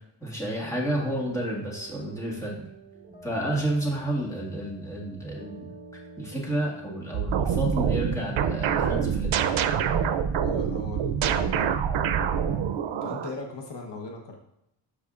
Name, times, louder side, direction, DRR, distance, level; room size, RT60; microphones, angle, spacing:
voice 1, 0.2-2.6 3.2-5.7 6.2-9.6, right 1 dB, 5° left, -3 dB, 1.8 m, -30 dB
sound 1, 0.6-13.4, right 3 dB, 20° right, 2.1 m, -48 dB
sound 2, 7.1-13.3, right 8 dB, 85° right, 0.6 m, -26 dB
voice 2, 10.4-11.8 12.9-14.3, left 3 dB, 60° left, 1 dB, 1.1 m, -39 dB
12.5 x 4.9 x 2.5 m, 0.84 s
wide cardioid pair, 145°, 47 cm